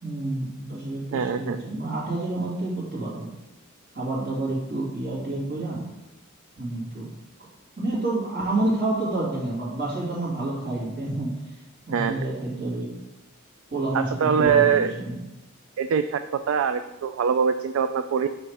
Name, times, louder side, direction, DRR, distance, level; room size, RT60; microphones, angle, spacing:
voice 1, 0.0-3.3 3.9-5.8 6.6-7.1 7.8-11.3 11.9-12.9 13.7-15.2, right 2 dB, 50° right, -6 dB, 2.5 m, -29 dB
voice 2, 1.1-1.6 11.9-12.2 13.9-14.9 15.8-18.3, right 7 dB, 70° right, 9 dB, 0.3 m, -23 dB
8.3 x 3.2 x 4.8 m, 0.99 s
head